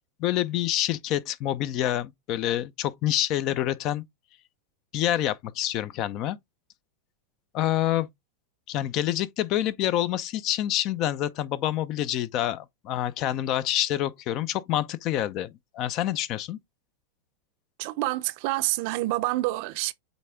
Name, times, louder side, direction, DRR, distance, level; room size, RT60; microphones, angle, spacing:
voice 1, 0.2-4.0 4.9-6.4 7.5-8.1 8.7-16.6, left 12 dB, 45° left, 0.6 m, -27 dB
voice 2, 17.8-19.9, right 18 dB, 55° right, 0.6 m, -27 dB
8.1 x 3.3 x 3.5 m
supercardioid pair, 135°, 0 cm